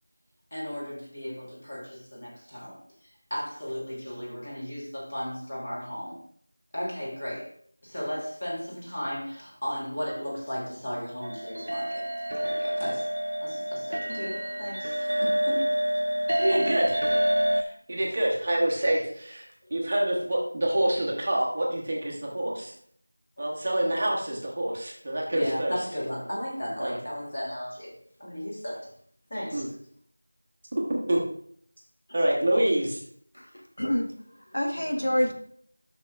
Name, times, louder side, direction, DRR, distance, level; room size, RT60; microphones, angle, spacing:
voice 1, 0.5-2.8 3.3-6.2 6.7-7.5 7.8-12.1 12.4-13.1 13.4-15.7 16.5-16.8 19.6-19.7 23.4-23.5 25.3-27.9 28.2-28.9 29.3-29.7 32.1-32.2 32.5-32.7, equal, 25° left, -5 dB, 1.4 m, -35 dB
sound 1, 11.2-17.6, equal, 65° right, 0.5 m, -27 dB
voice 2, 16.4-16.8 17.5-19.4 19.7-22.7 23.4-25.7 26.8-26.9 29.5-29.6 30.9-31.2 32.1-33.0, right 1 dB, 15° right, -2 dB, 0.8 m, -26 dB
voice 3, 33.3-34.1 34.5-35.3, equal, 90° left, 4 dB, 1.3 m, -27 dB
10.5 x 6.0 x 2.4 m, 0.62 s
figure-of-eight pair, 180°, 0 cm